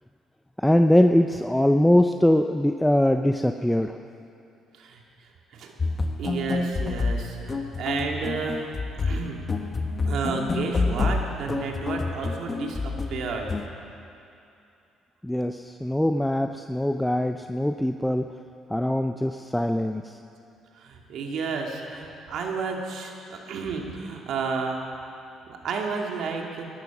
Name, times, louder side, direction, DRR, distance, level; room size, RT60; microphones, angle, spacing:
voice 1, 0.6-4.0 15.2-18.2 18.7-20.2, left 1 dB, 5° left, 6 dB, 0.6 m, -22 dB
sound 1, 5.8-13.7, left 3 dB, 35° left, 1.3 m, -28 dB
voice 2, 6.2-8.6 9.0-9.4 10.0-13.5 20.7-24.8 25.5-26.7, right 4 dB, 70° right, 1 dB, 2.4 m, -31 dB
19.0 x 12.0 x 6.1 m, 2.7 s
supercardioid pair, 65°, 0 cm